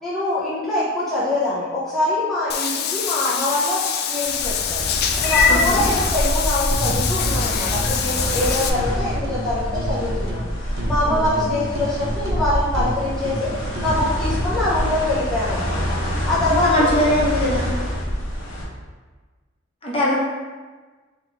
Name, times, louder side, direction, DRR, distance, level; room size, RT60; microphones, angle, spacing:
voice 1, 0.0-3.8 4.1-4.9 5.2-10.5 10.9-13.5 13.8-15.8 16.3-17.0, left 2 dB, ahead, -11 dB, 0.6 m, -24 dB
Meow / Water / Bathtub (filling or washing), 2.5-8.7, left 7 dB, 50° left, 0.3 m, -23 dB
sound 1, 4.2-18.6, equal, 75° left, 0.9 m, -26 dB
voice 2, 5.5-5.9 11.0-11.5 16.5-17.8 19.8-20.1, equal, 25° left, -6 dB, 0.9 m, -22 dB
sound 2, 6.7-8.4 8.7-10.5 10.8-14.5, equal, 70° right, 0.6 m, -30 dB
4.0 x 3.0 x 3.4 m, 1.4 s
head